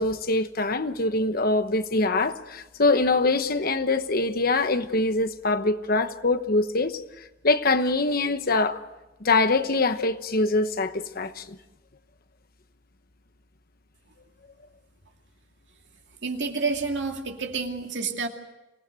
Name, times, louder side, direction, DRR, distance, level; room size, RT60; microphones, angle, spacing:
voice 1, 0.0-7.0 7.4-8.8 9.2-11.6, left 3 dB, 50° left, 1.1 m, -24 dB
voice 2, 16.2-18.3, right 4 dB, 70° right, 2.5 m, -29 dB
26.0 x 18.0 x 7.8 m
head